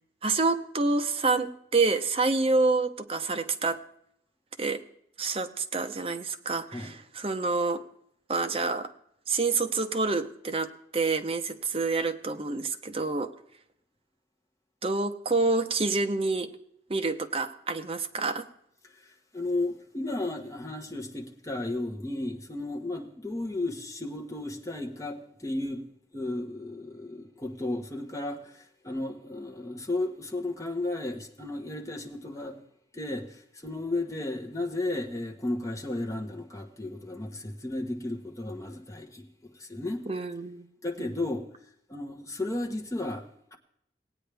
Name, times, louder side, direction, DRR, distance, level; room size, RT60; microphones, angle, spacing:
voice 1, 0.2-3.8 4.6-4.8 5.2-7.8 8.3-8.9 9.3-13.3 14.8-16.5 16.9-18.5 40.1-40.7 41.0-41.2, right 3 dB, 35° right, 0.8 m, -28 dB
voice 2, 18.9-25.8 26.1-32.6 32.9-40.1 40.8-41.5 41.9-43.6, left 2 dB, 20° left, 1.1 m, -34 dB
18.0 x 9.0 x 3.4 m
head